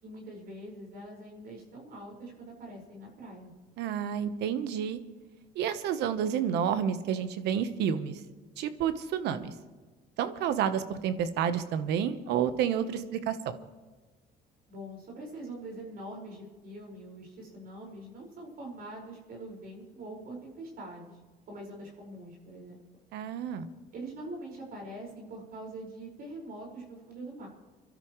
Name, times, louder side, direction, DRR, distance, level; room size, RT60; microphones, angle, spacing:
voice 1, 0.0-3.5 14.7-21.1 21.5-22.7 23.9-27.5, right 1 dB, 60° right, -1 dB, 5.2 m, -43 dB
voice 2, 3.8-5.0 5.5-8.2 8.6-9.5 10.2-13.5 23.1-23.7, right 8 dB, 85° right, 11 dB, 1.1 m, -30 dB
28.5 x 12.5 x 3.2 m, 1.3 s
cardioid pair, 110°, 17 cm